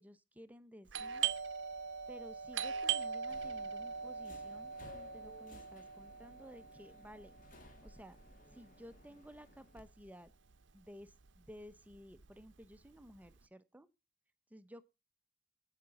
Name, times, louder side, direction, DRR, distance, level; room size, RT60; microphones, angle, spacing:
voice 1, 0.0-1.3 2.1-7.3 7.8-8.2 8.5-10.3 10.7-13.9 14.5-14.9, equal, 10° right, 0.7 m, -55 dB
Doorbell, 0.9-10.3 10.5-10.6 11.3-11.6 11.9-13.3, right 7 dB, 75° right, 0.8 m, -41 dB
Subway metro underground, 3.2-9.8, left 2 dB, 45° left, 2.3 m, -59 dB
16.5 x 5.9 x 4.1 m
head